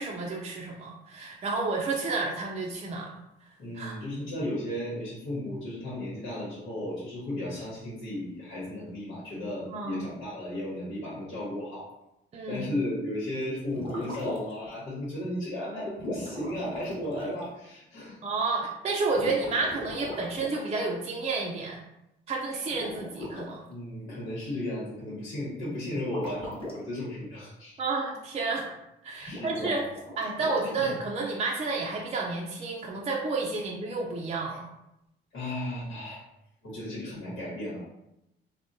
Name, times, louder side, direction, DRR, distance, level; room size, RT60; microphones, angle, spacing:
voice 1, 0.0-3.1 3.7-4.0 9.7-10.0 12.3-12.7 18.2-21.8 22.3-23.6 27.8-28.7 29.0-29.8 30.2-34.6, right 3 dB, 30° right, -2 dB, 0.5 m, -31 dB
voice 2, 3.6-11.9 12.5-18.2 23.7-27.8 29.2-29.9 30.6-30.9 33.5-33.6 34.5-34.6 35.3-36.2 36.6-37.8, left 1 dB, 85° left, -7 dB, 1.1 m, -35 dB
sound 1, 13.7-14.7 16.0-17.4 19.1-20.7 22.7-23.5 26.0-26.8 29.2-30.9, left 1 dB, 25° left, 1.1 m, -39 dB
3.6 x 2.1 x 2.6 m, 0.86 s
cardioid pair, 90°, 20 cm